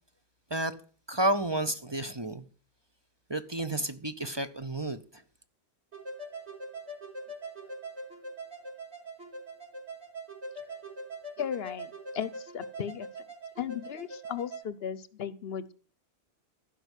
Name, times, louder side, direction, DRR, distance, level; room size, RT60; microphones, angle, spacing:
voice 1, 1.1-2.4 3.3-5.2, right 1 dB, 25° right, 0.8 m, -31 dB
sound 1, 5.9-14.6, right 2 dB, 80° right, 4.5 m, -42 dB
voice 2, 11.4-13.1 13.6-15.7, left 8 dB, 65° left, 0.9 m, -36 dB
15.0 x 5.4 x 8.2 m
omnidirectional pair, 1.1 m